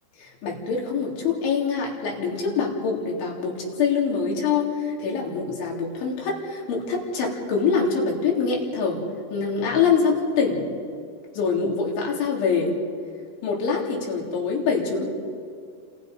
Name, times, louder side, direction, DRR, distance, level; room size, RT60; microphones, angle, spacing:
voice 1, 0.4-9.0 9.3-10.6 11.3-12.7 13.4-15.1, left 5 dB, 75° left, -2 dB, 6.0 m, -24 dB
29.5 x 28.0 x 5.3 m, 2.3 s
omnidirectional pair, 5.5 m